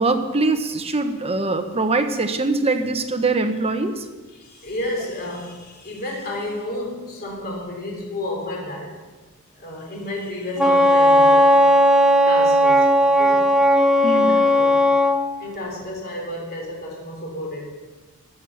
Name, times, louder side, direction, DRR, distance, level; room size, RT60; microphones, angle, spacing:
voice 1, 0.0-4.0 14.0-14.3, right 3 dB, 25° right, 6 dB, 1.1 m, -22 dB
voice 2, 4.3-9.0 9.5-13.4 14.1-14.8 15.4-17.7, left 1 dB, 45° left, -1 dB, 3.1 m, -32 dB
Wind instrument woodwind instrument, 10.6-15.2, equal, ahead, 0.8 m, -15 dB
12.5 x 9.4 x 7.1 m, 1.3 s
head